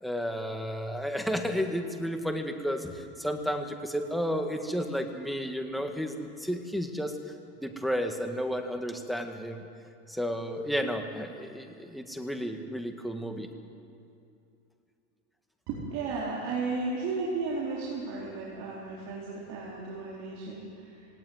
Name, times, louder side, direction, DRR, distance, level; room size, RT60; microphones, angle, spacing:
voice 1, 0.0-7.1 7.6-9.7 10.1-13.5, equal, ahead, 5 dB, 1.8 m, -32 dB
voice 2, 15.7-21.1, right 3 dB, 55° right, -5 dB, 4.1 m, -34 dB
17.5 x 17.5 x 9.4 m, 2.6 s
supercardioid pair, 120°, 33 cm